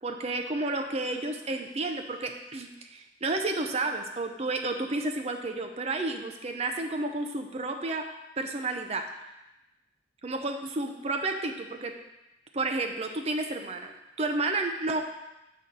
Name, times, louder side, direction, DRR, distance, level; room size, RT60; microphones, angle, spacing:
voice 1, 0.0-8.1 8.4-9.0 10.2-11.9 12.5-15.0, right 2 dB, 35° right, 4 dB, 0.6 m, -31 dB
6.3 x 4.3 x 5.3 m, 0.94 s
head